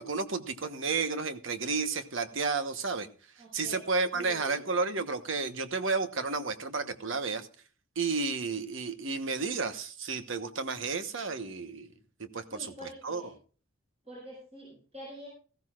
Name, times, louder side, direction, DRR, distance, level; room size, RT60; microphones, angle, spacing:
voice 1, 0.0-3.1 3.5-7.5 8.0-11.9 12.2-13.2, right 4 dB, 70° right, 9 dB, 1.1 m, -32 dB
voice 2, 3.4-3.8 4.1-4.7 12.5-13.3 14.0-15.3, equal, 30° right, -3 dB, 6.2 m, -46 dB
18.5 x 14.5 x 2.5 m, 0.38 s
head